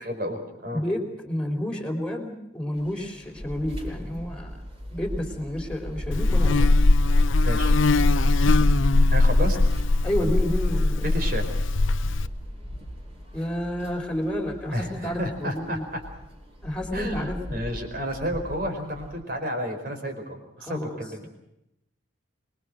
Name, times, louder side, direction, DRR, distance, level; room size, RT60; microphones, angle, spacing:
voice 1, 0.1-0.8 7.4-7.7 9.1-9.6 11.0-11.4 14.7-16.0 16.9-21.3, equal, 45° right, 5 dB, 4.9 m, -31 dB
voice 2, 0.7-4.6 4.9-6.8 10.0-11.1 13.3-15.9 16.6-17.6 20.6-21.3, left 1 dB, 5° left, 1 dB, 4.1 m, -30 dB
sound 1, 2.7-19.2, equal, 30° right, 6.1 m, -36 dB
Buzz, 6.1-12.3, left 2 dB, 75° left, 0.8 m, -20 dB
26.0 x 22.5 x 6.4 m, 0.85 s
head